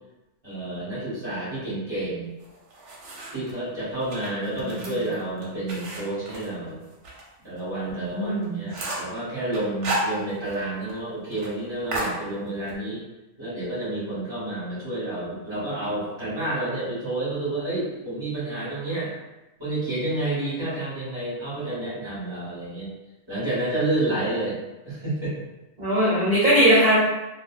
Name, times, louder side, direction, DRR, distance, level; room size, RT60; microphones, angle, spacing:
voice 1, 0.4-2.3 3.3-6.8 7.4-13.0 13.4-19.1 19.6-22.9 23.3-24.6 24.8-25.3, right 2 dB, 20° right, -10 dB, 1.5 m, -29 dB
sound 1, 2.4-3.5 4.0-7.2 7.6-7.7 8.1-8.2 8.4-9.1 9.5-10.6 10.9-11.0 11.3-11.5 11.9-12.8, right 2 dB, 65° right, 1.0 m, -33 dB
voice 2, 7.9-8.6 25.8-27.0, equal, 40° right, -11 dB, 0.9 m, -20 dB
2.6 x 2.5 x 2.4 m, 1.0 s
omnidirectional pair, 1.5 m